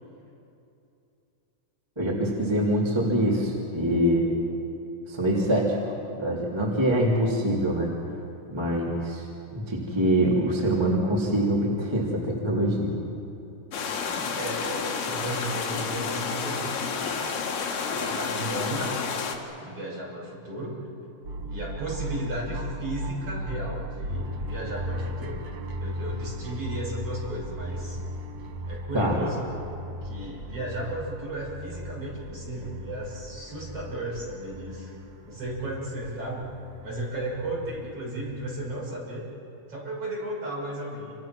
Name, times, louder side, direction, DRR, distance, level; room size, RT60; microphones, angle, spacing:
voice 1, 2.0-4.3 5.1-5.9 6.2-7.9 8.5-9.3 9.5-12.9 28.9-29.2, right 1 dB, 10° right, -4 dB, 2.4 m, -24 dB
sound 1, 13.7-19.4, left 5 dB, 70° left, 3.7 m, -30 dB
voice 2, 13.9-17.4 17.9-19.0 19.6-20.8 21.5-25.4 25.8-28.0 28.7-29.5 30.0-34.9 35.2-36.5 36.8-39.3 39.7-41.2, right 1 dB, 35° right, -4 dB, 7.5 m, -34 dB
sound 2, 21.2-38.8, equal, 60° right, 1.7 m, -37 dB
29.5 x 26.0 x 6.1 m, 2.8 s
omnidirectional pair, 4.9 m